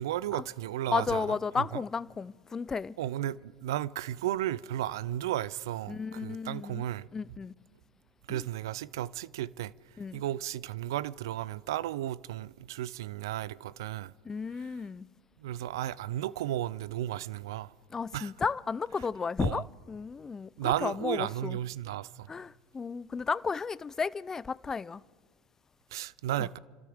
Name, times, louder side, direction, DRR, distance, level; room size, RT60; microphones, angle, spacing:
voice 1, 0.0-1.8 3.0-7.1 8.3-9.7 10.1-14.1 14.6-14.7 15.4-17.7 18.1-18.3 19.4-19.6 20.6-22.3 25.9-26.6, right 13 dB, 85° right, 0.4 m, -34 dB
voice 2, 0.9-2.9 5.9-6.8 7.1-7.5 8.3-8.4 10.0-10.2 14.3-15.1 17.9-21.6 22.3-25.0, left 5 dB, 20° left, 0.4 m, -33 dB
29.5 x 13.0 x 3.6 m
hypercardioid pair, 90°, 2 cm